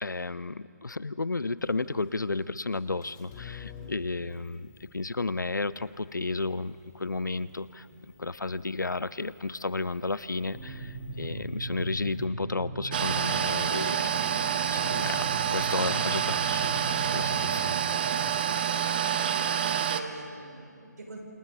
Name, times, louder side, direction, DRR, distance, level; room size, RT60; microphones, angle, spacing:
voice 1, 0.0-14.2 14.7-16.8 17.1-17.8, left 3 dB, 90° left, 17 dB, 0.7 m, -33 dB
sound 1, 1.6-12.3, left 8 dB, 20° left, 1.5 m, -52 dB
sound 2, 10.3-18.3, right 2 dB, 15° right, 5.4 m, -39 dB
sound 3, 12.9-20.0, right 8 dB, 30° right, 0.9 m, -28 dB
voice 2, 19.2-21.2, right 2 dB, 65° right, 0 dB, 6.4 m, -45 dB
29.5 x 27.5 x 4.1 m, 2.3 s
figure-of-eight pair, 155°, 10 cm